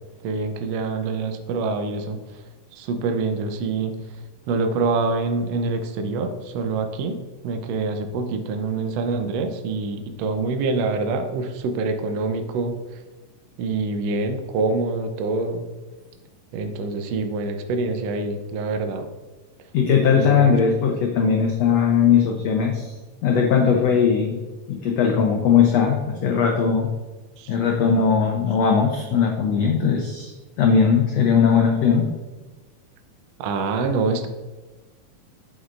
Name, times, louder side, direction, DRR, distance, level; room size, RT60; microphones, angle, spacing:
voice 1, 0.2-2.2 2.8-3.9 4.5-7.2 7.4-12.7 13.6-15.6 16.5-19.1 20.1-20.5 20.8-20.9 27.4-27.5 33.4-34.3, right 3 dB, 90° right, 6 dB, 1.4 m, -25 dB
voice 2, 19.7-22.9 23.2-24.4 24.7-26.9 27.5-30.3 30.6-32.1, left 6 dB, 80° left, 1 dB, 1.5 m, -19 dB
8.2 x 7.8 x 2.5 m, 1.2 s
omnidirectional pair, 3.9 m